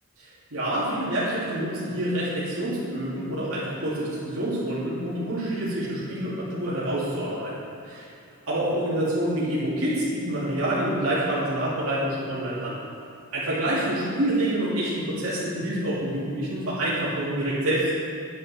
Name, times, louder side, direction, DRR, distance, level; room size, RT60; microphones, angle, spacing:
voice 1, 0.5-7.5 8.5-12.7 13.3-17.9, right 1 dB, 75° right, -9 dB, 2.4 m, -27 dB
9.1 x 9.0 x 4.2 m, 2.6 s
head